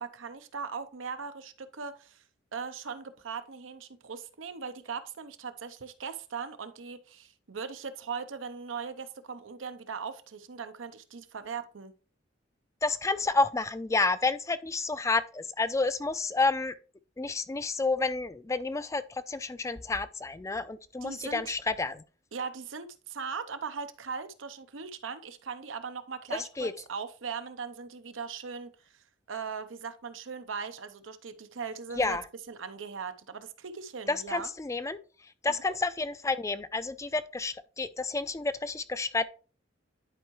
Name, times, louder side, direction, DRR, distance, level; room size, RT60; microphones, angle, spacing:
voice 1, 0.0-2.2 2.5-11.9 21.0-21.4 22.3-32.2 32.5-34.5 35.5-35.8, right 5 dB, 90° right, 0.7 m, -39 dB
voice 2, 12.8-16.7 17.2-22.0 26.6-26.7 32.0-32.2 34.1-35.0 35.4-39.2, left 3 dB, 15° left, 0.3 m, -30 dB
10.5 x 4.6 x 3.1 m
head